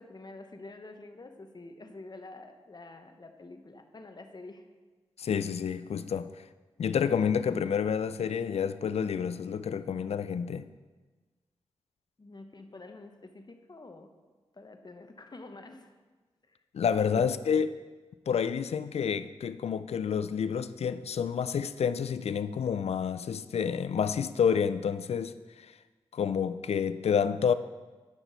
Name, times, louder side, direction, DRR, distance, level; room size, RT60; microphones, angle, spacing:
voice 1, 0.0-4.6 12.2-14.1 14.5-15.9 16.4-16.6 17.1-17.4, left 2 dB, 40° left, 0.9 m, -47 dB
voice 2, 5.2-6.3 6.8-10.7 16.7-17.7 18.3-25.7 26.1-27.5, left 7 dB, 70° left, 0.4 m, -29 dB
9.8 x 6.0 x 4.0 m
cardioid pair, 40°, 11 cm